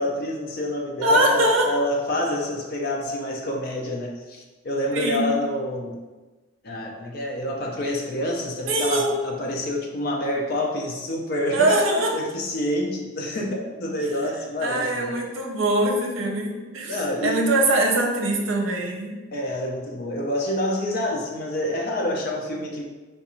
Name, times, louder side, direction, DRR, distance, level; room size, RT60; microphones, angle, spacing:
voice 1, 0.0-6.0 6.6-11.8 12.1-15.2 16.9-17.4 19.3-22.8, left 1 dB, 50° left, 0 dB, 0.5 m, -27 dB
voice 2, 1.0-1.7 4.9-5.3 8.7-9.2 11.5-12.2 14.0-14.1 14.6-19.2, right 1 dB, 85° right, 2 dB, 0.6 m, -22 dB
4.3 x 2.4 x 2.9 m, 1.2 s
head